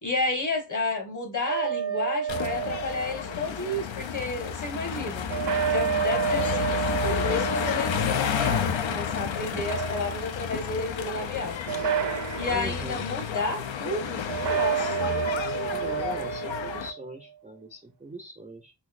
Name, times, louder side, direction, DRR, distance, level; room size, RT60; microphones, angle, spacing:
voice 1, 0.0-5.3 5.7-11.6 12.3-15.1, left 2 dB, 40° left, 1.2 m, -31 dB
sound 1, 1.5-3.5 5.3-9.0 9.5-10.5 11.7-12.8 14.3-17.0, right 8 dB, 65° right, 0.6 m, -30 dB
sound 2, 2.3-16.9, left 7 dB, 75° left, 0.5 m, -31 dB
voice 2, 12.5-13.1 15.7-18.7, right 2 dB, 15° right, 0.4 m, -40 dB
4.0 x 2.7 x 2.4 m
wide cardioid pair, 75°, 45 cm